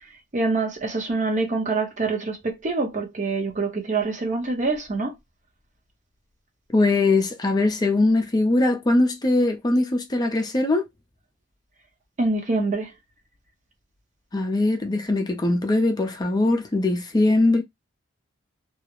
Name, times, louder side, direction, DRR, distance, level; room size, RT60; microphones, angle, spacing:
voice 1, 0.3-5.1 12.2-12.9, right 3 dB, 40° right, 0.7 m, -25 dB
voice 2, 6.7-10.9 14.3-17.6, left 2 dB, 20° left, 0.4 m, -21 dB
2.3 x 2.0 x 2.8 m
head